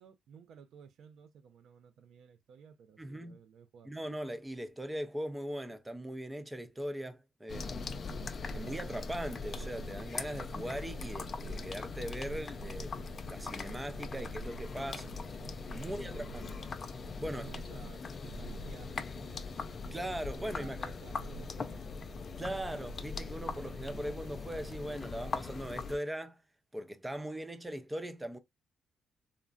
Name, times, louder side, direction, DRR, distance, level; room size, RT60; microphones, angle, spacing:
voice 1, 0.0-4.0 14.9-15.1 15.8-16.5 17.3-19.7 20.4-21.9, right 7 dB, 70° right, 0.4 m, -55 dB
voice 2, 3.0-3.4 3.9-8.2 8.5-12.9 13.3-15.1 15.7-16.5 17.2-17.6 19.9-21.0 22.4-26.4 26.7-28.4, right 1 dB, 10° right, 0.5 m, -40 dB
sound 1, 7.5-26.0, left 3 dB, 45° left, 0.4 m, -41 dB
3.7 x 2.1 x 2.2 m
cardioid pair, 90°, 0 cm